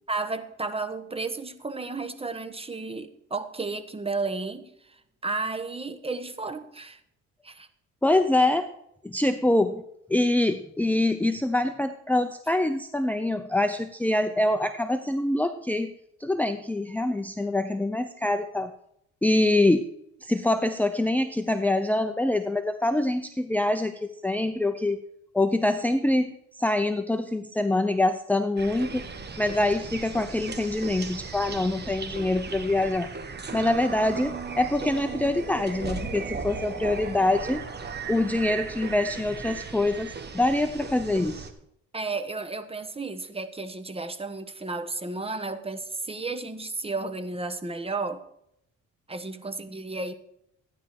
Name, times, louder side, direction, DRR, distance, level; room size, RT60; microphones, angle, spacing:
voice 1, 0.1-4.7 5.2-7.0 7.4-7.7 41.9-48.2 49.1-50.1, right 3 dB, 20° right, 10 dB, 1.2 m, -33 dB
voice 2, 8.0-8.7 9.0-9.8 10.1-15.9 16.2-18.7 19.2-19.9 20.2-25.0 25.3-29.1 29.4-33.1 33.5-37.6 38.1-41.5, left 2 dB, 5° left, 8 dB, 0.7 m, -25 dB
sound 1, 28.6-41.5, right 5 dB, 35° right, 1.6 m, -36 dB
14.5 x 10.0 x 4.7 m, 0.77 s
cardioid pair, 90°, 30 cm